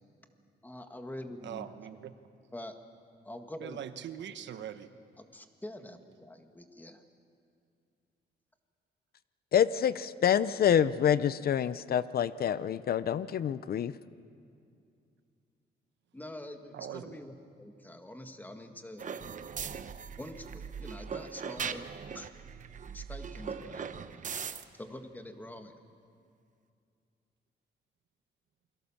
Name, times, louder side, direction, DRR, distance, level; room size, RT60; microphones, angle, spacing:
voice 1, 0.6-1.7 2.5-2.7 3.2-3.8 5.2-7.0 16.1-19.1 20.2-21.9 22.1-22.3 22.9-24.0 24.8-25.7, left 1 dB, 10° left, 6 dB, 1.7 m, -45 dB
voice 2, 1.4-2.1 3.6-4.9 16.7-17.2, right 10 dB, 85° right, 10 dB, 1.2 m, -41 dB
voice 3, 9.5-13.9, left 9 dB, 55° left, 15 dB, 0.6 m, -27 dB
sound 1, 19.0-24.6, right 6 dB, 45° right, 0.9 m, -40 dB
28.0 x 22.5 x 7.2 m, 2.4 s
cardioid pair, 130°, 18 cm